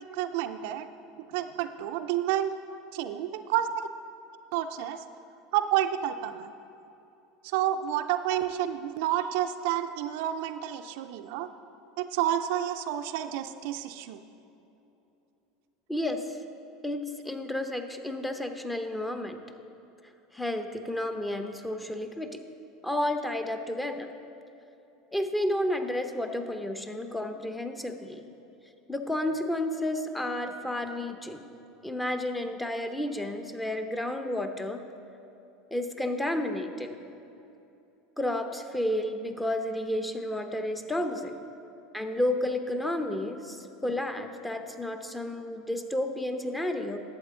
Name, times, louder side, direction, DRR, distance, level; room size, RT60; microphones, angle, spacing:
voice 1, 0.1-0.9 1.3-2.5 2.9-3.9 4.5-5.0 5.5-6.5 7.4-11.5 12.0-14.2, right 11 dB, 70° right, 8 dB, 0.4 m, -29 dB
voice 2, 15.9-16.4 16.8-19.4 20.3-22.4 22.8-24.1 25.1-28.3 28.9-31.4 31.8-34.8 35.7-36.9 38.2-41.4 41.9-47.0, left 1 dB, 10° left, 6 dB, 0.7 m, -31 dB
11.5 x 7.6 x 3.8 m, 2.9 s
hypercardioid pair, 85°, 0 cm